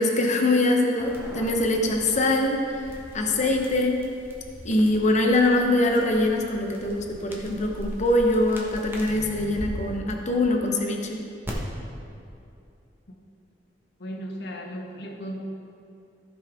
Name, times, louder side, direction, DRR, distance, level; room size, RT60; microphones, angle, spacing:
voice 1, 0.0-2.6 3.1-4.0 4.6-11.2, left 2 dB, 40° left, 2 dB, 0.9 m, -23 dB
sound 1, 1.0-9.7 11.4-11.5, equal, 15° right, 1.2 m, -41 dB
voice 2, 14.0-15.4, equal, 65° left, 1 dB, 1.2 m, -35 dB
15.0 x 5.5 x 3.6 m, 2.6 s
head